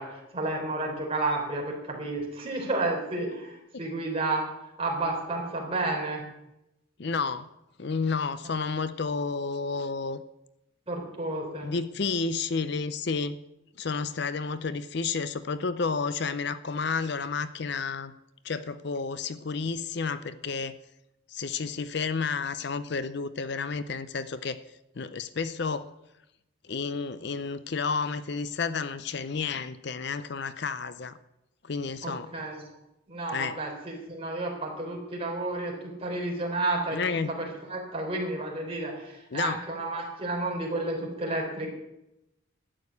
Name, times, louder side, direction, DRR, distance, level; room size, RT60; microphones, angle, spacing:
voice 1, 0.0-4.4 4.8-6.2 10.9-11.7 32.0-32.6 33.1-37.0 37.3-41.7, right 2 dB, 30° right, 0 dB, 3.8 m, -31 dB
voice 2, 7.0-7.5 7.8-10.2 11.6-13.4 13.8-18.1 18.4-20.8 21.3-24.6 25.0-25.9 26.7-31.2 31.6-32.3 33.3-33.6 36.9-37.3 39.3-39.6, left 4 dB, 55° left, 13 dB, 0.6 m, -31 dB
12.5 x 8.9 x 8.5 m, 0.88 s
head